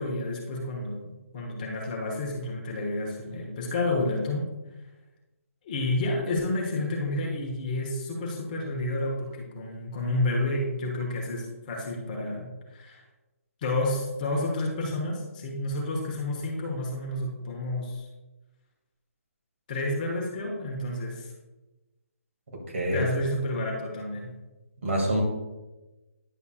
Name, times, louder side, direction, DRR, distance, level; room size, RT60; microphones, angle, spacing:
voice 1, 0.0-4.5 5.6-13.0 13.6-18.1 19.7-21.3 22.9-24.3, left 2 dB, 35° left, -1 dB, 1.2 m, -30 dB
voice 2, 22.7-23.1 24.8-25.2, right 1 dB, 60° right, -1 dB, 2.3 m, -26 dB
10.0 x 6.9 x 2.4 m, 1.1 s
figure-of-eight pair, 140°, 8 cm